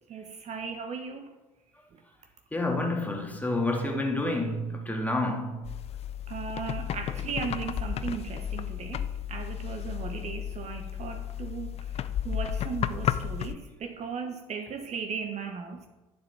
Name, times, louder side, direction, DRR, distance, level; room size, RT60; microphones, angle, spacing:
voice 1, 0.1-1.3 1.9-2.0 6.3-15.9, right 6 dB, 40° right, 0.9 m, -37 dB
voice 2, 2.5-5.6, left 2 dB, 10° left, 1.8 m, -29 dB
sound 1, 5.6-13.5, left 9 dB, 35° left, 0.4 m, -33 dB
10.5 x 7.1 x 3.4 m
figure-of-eight pair, 65°, 18 cm